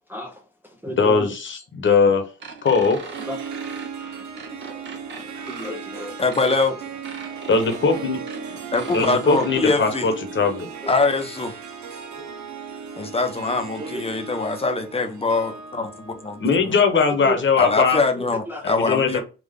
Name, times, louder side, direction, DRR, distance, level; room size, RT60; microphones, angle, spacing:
voice 1, 0.1-0.4 0.8-1.3 3.3-3.4 5.5-6.2 10.8-10.9 12.2-12.3 13.8-14.0 17.1-17.4 18.1-18.6, equal, 5° right, 0.6 m, -32 dB
voice 2, 0.9-2.2 2.6-3.0 7.5-8.2 8.5-8.6 8.9-10.7 16.4-18.0 18.6-19.2, left 5 dB, 40° left, 1.1 m, -20 dB
sound 1, 2.4-9.6, right 4 dB, 40° right, 0.9 m, -40 dB
Harp, 2.8-17.3, right 6 dB, 70° right, 0.8 m, -37 dB
voice 3, 6.2-6.8 8.7-10.1 10.9-11.5 13.0-16.7 17.6-19.2, left 3 dB, 20° left, 0.8 m, -23 dB
3.8 x 2.4 x 3.6 m
cardioid pair, 90°, 30 cm